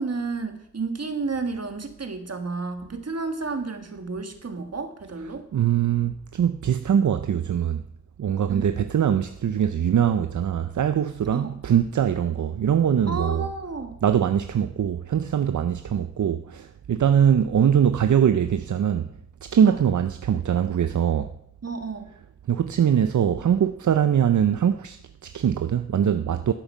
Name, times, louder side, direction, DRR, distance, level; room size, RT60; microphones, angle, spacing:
voice 1, 0.0-5.5 8.5-8.7 11.3-11.5 13.1-14.0 19.6-19.8 21.6-22.1, right 4 dB, 60° right, 1.4 m, -31 dB
voice 2, 5.5-7.8 8.2-13.5 14.0-19.1 19.4-21.3 22.5-26.5, right 9 dB, 80° right, 0.5 m, -22 dB
12.0 x 8.9 x 5.4 m
wide cardioid pair, 65°, 29 cm